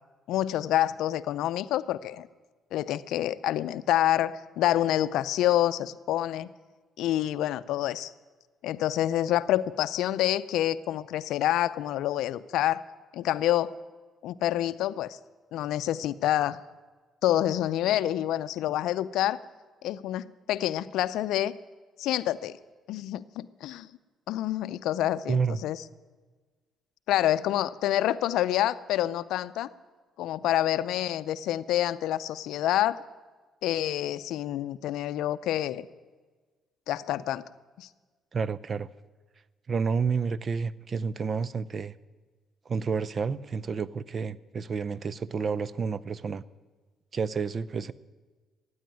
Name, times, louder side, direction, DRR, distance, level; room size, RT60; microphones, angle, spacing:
voice 1, 0.3-2.3 2.7-6.5 7.0-8.1 8.6-12.8 13.1-13.7 14.2-15.2 15.5-16.6 17.2-19.4 19.8-21.6 22.0-22.6 22.9-23.9 24.3-25.8 27.1-29.7 30.2-33.0 33.6-35.9 36.9-37.4 37.8-37.9, left 13 dB, 75° left, 15 dB, 0.5 m, -27 dB
voice 2, 25.3-25.6 38.3-38.9 39.7-41.9 42.7-46.4 47.1-47.9, right 5 dB, 45° right, 19 dB, 0.6 m, -30 dB
15.0 x 9.5 x 9.1 m, 1.4 s
supercardioid pair, 55°, 0 cm